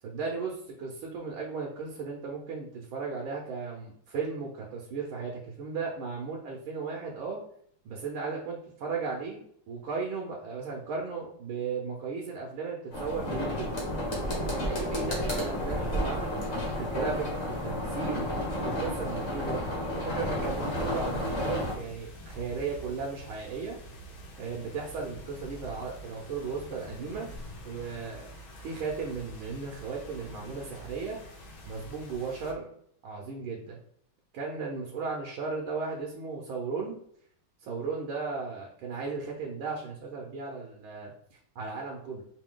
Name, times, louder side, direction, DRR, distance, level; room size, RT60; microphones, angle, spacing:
voice 1, 0.0-7.4 7.8-13.7 14.4-16.4 16.8-17.3 17.6-18.3 18.6-19.6 19.9-23.8 24.4-27.3 27.6-28.3 28.6-31.2 31.6-32.7 33.0-33.8 34.3-36.9 37.6-42.2, right 5 dB, 75° right, -1 dB, 1.6 m, -36 dB
sound 1, 12.9-21.7, left 1 dB, 35° left, 1.5 m, -31 dB
sound 2, 20.4-32.5, equal, 75° left, 1.6 m, -46 dB
5.2 x 2.7 x 3.7 m, 0.67 s
omnidirectional pair, 2.3 m